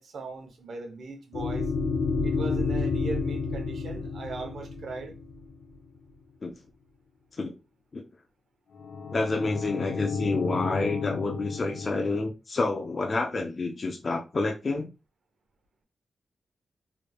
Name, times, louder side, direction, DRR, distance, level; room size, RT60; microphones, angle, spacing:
voice 1, 0.0-1.7 2.2-5.1, right 3 dB, 75° right, 0.9 m, -39 dB
sound 1, 1.3-5.7 8.7-12.1, left 4 dB, 80° left, 0.7 m, -31 dB
voice 2, 9.1-14.9, left 3 dB, 45° left, 0.5 m, -29 dB
3.4 x 3.1 x 2.3 m
cardioid pair, 90°, 0 cm